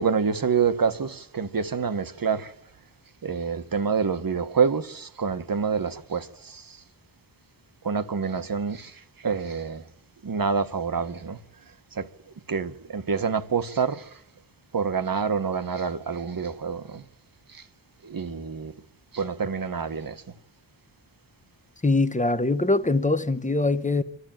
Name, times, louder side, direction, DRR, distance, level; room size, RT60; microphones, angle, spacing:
voice 1, 0.0-2.5 3.2-6.8 7.8-9.8 10.2-11.4 11.9-12.1 12.5-14.1 14.7-17.0 17.5-17.6 18.0-18.7 19.1-20.2, right 5 dB, 50° right, 1.3 m, -27 dB
voice 2, 21.8-24.0, left 2 dB, 15° left, 1.1 m, -23 dB
25.0 x 13.0 x 9.0 m
wide cardioid pair, 75°, 45 cm